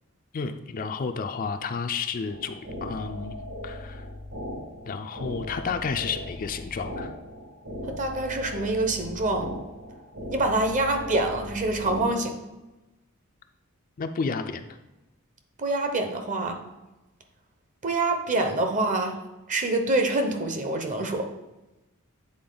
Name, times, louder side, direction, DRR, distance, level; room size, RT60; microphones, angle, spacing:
voice 1, 0.3-3.4 3.6-4.1 4.8-7.1 14.0-14.8, left 5 dB, 40° left, 7 dB, 0.4 m, -31 dB
sound 1, 2.3-12.1, left 1 dB, 65° right, 1.8 m, -38 dB
voice 2, 7.9-9.5 10.3-12.4 15.6-16.6 17.8-19.2 19.5-21.3, right 2 dB, 35° right, 5 dB, 0.8 m, -26 dB
8.7 x 4.1 x 3.8 m, 1.0 s
head